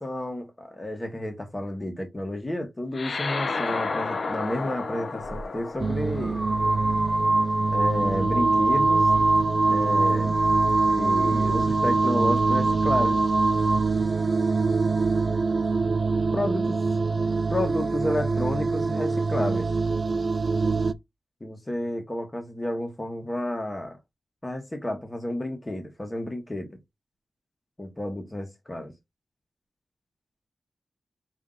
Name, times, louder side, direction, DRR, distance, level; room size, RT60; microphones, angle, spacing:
voice 1, 0.0-6.4 7.7-9.1 9.7-10.4 10.9-13.2 16.3-16.8 17.5-19.7 21.4-24.0 24.4-26.8 27.8-28.9, left 1 dB, 20° left, 1.2 m, -31 dB
sound 1, 2.9-7.7, left 4 dB, 50° left, 0.6 m, -32 dB
sound 2, 5.2-5.4 6.2-13.9, right 2 dB, 10° right, 0.7 m, -24 dB
sound 3, 5.8-20.9, right 4 dB, 35° right, 0.4 m, -26 dB
5.3 x 2.7 x 3.7 m
wide cardioid pair, 145°, 0 cm